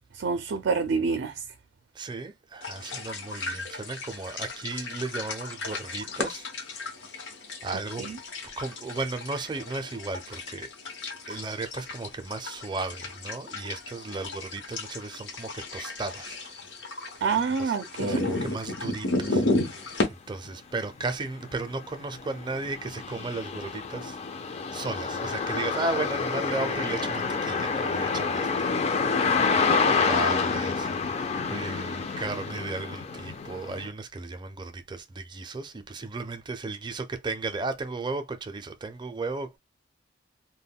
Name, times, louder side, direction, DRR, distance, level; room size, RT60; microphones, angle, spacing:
voice 1, 0.2-1.3 8.0-8.2 17.2-18.3, right 5 dB, 85° right, 0.4 m, -27 dB
voice 2, 1.9-6.5 7.6-8.1 8.6-10.7 11.3-16.4 17.6-17.7 18.0-19.4 20.1-24.2 24.7-28.8 29.4-30.9 31.5-39.6, right 3 dB, 25° right, 0.4 m, -35 dB
sound 1, 2.6-20.1, left 2 dB, 85° left, 0.9 m, -34 dB
sound 2, 20.5-20.6 21.0-33.9, left 5 dB, 35° left, 0.4 m, -28 dB
2.2 x 2.2 x 3.5 m
head